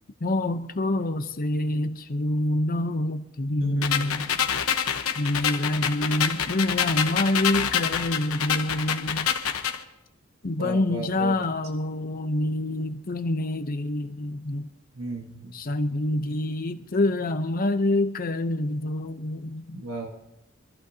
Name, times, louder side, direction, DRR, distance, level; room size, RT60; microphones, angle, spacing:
voice 1, 0.2-4.3 5.2-9.3 10.4-14.7 15.5-19.8, left 1 dB, 45° left, 0.8 m, -26 dB
voice 2, 3.6-4.4 10.6-11.3 15.0-15.6 19.7-20.1, right 2 dB, 80° right, 1.5 m, -35 dB
sound 1, 3.8-9.8, left 8 dB, 90° left, 1.1 m, -27 dB
25.0 x 14.5 x 2.8 m
head